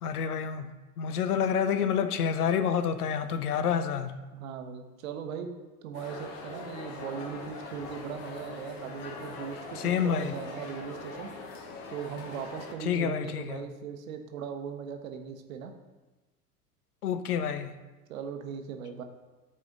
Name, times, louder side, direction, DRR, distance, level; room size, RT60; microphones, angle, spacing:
voice 1, 0.0-4.1 9.7-10.4 12.8-13.6 17.0-17.7, left 7 dB, 70° left, 0.6 m, -28 dB
voice 2, 4.3-5.5 5.8-11.3 11.9-15.7 18.1-19.0, right 7 dB, 60° right, 0.9 m, -39 dB
sound 1, 5.9-12.7, left 3 dB, 45° left, 1.0 m, -42 dB
8.1 x 4.3 x 3.8 m
figure-of-eight pair, 85°, 46 cm